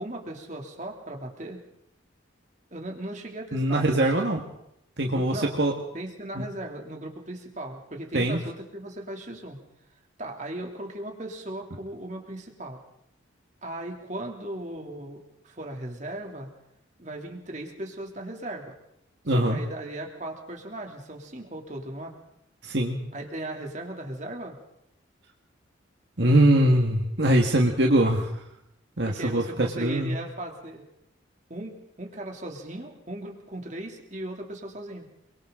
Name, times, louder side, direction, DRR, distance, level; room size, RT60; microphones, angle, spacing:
voice 1, 0.0-1.6 2.7-4.3 5.1-5.6 5.9-9.6 10.2-12.8 13.6-16.5 17.0-18.7 19.3-22.1 23.1-24.6 29.1-30.8 31.5-35.1, right 1 dB, 35° right, 2 dB, 3.1 m, -37 dB
voice 2, 3.5-4.4 5.0-5.7 6.4-6.5 8.1-8.4 19.3-19.6 22.6-23.0 26.2-28.4 29.0-30.2, right 1 dB, 60° right, 1 dB, 1.9 m, -22 dB
29.5 x 23.0 x 3.9 m, 0.79 s
head